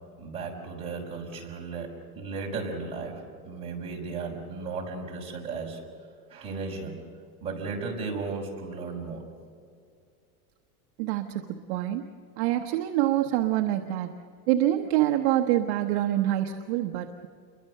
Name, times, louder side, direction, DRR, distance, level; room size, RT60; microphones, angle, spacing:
voice 1, 0.2-5.8 6.3-6.9 7.4-9.3, right 4 dB, 15° right, -4 dB, 5.1 m, -35 dB
voice 2, 11.0-12.0 12.4-14.1 14.5-17.3, right 13 dB, 45° right, 3 dB, 1.0 m, -26 dB
28.5 x 23.0 x 6.6 m, 2.3 s
supercardioid pair, 175°, 44 cm